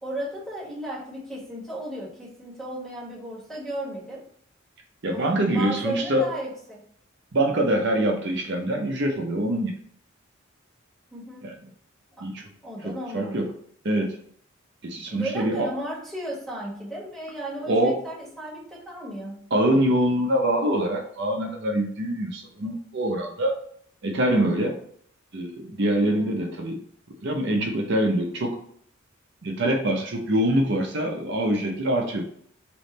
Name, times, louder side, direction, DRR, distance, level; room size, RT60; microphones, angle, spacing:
voice 1, 0.0-4.2 5.1-6.8 11.1-11.5 12.2-12.3 12.6-13.4 15.1-19.5 26.2-26.5, right 1 dB, 5° left, -5 dB, 1.5 m, -35 dB
voice 2, 5.0-6.3 7.3-9.7 11.4-11.5 12.2-12.4 12.8-13.5 13.8-14.2 14.8-15.7 17.6-18.0 19.5-23.5 24.0-24.8 25.3-26.8 27.2-28.6 29.4-32.3, right 1 dB, 55° right, 1 dB, 0.7 m, -24 dB
3.4 x 3.0 x 4.1 m, 0.63 s
head